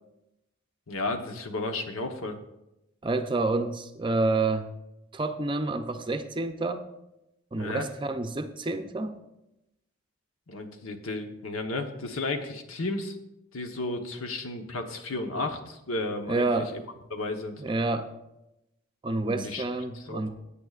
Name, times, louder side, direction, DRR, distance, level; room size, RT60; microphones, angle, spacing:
voice 1, 0.9-2.4 7.5-7.9 10.5-13.2 13.5-16.5 17.1-17.6 19.2-19.6 19.9-20.3, left 2 dB, 90° left, 5 dB, 1.1 m, -33 dB
voice 2, 3.0-4.7 5.1-6.8 7.5-9.2 16.3-16.7 17.6-18.1 19.0-20.3, right 2 dB, 25° right, 8 dB, 0.5 m, -28 dB
17.0 x 8.6 x 2.4 m, 0.90 s
head